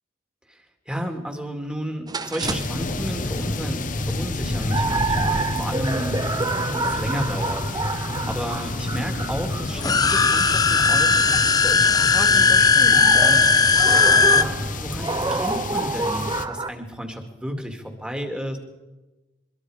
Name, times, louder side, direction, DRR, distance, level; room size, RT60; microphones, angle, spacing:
voice 1, 0.5-6.4 6.7-11.2 11.4-13.7 14.2-18.6, equal, 5° right, 4 dB, 2.3 m, -33 dB
sound 1, 2.1-16.7, right 3 dB, 20° right, 0.7 m, -29 dB
sound 2, 2.4-16.5, left 2 dB, 45° left, 1.1 m, -29 dB
sound 3, 9.7-14.4, left 4 dB, 20° left, 0.7 m, -17 dB
24.5 x 22.0 x 5.0 m, 1.1 s
head